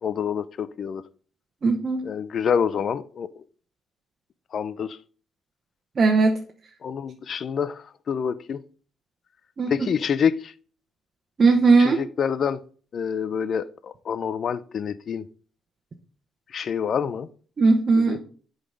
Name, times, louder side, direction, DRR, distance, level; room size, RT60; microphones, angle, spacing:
voice 1, 0.0-1.0 2.0-3.4 4.5-5.0 6.8-8.6 9.7-10.5 11.8-12.6 12.9-15.3 16.5-17.3 17.9-18.2, left 7 dB, 55° left, 0.5 m, -27 dB
voice 2, 1.6-2.0 6.0-6.4 9.6-9.9 11.4-12.0 17.6-18.2, right 4 dB, 40° right, 1.1 m, -18 dB
8.0 x 4.0 x 5.2 m
cardioid pair, 90°, 0 cm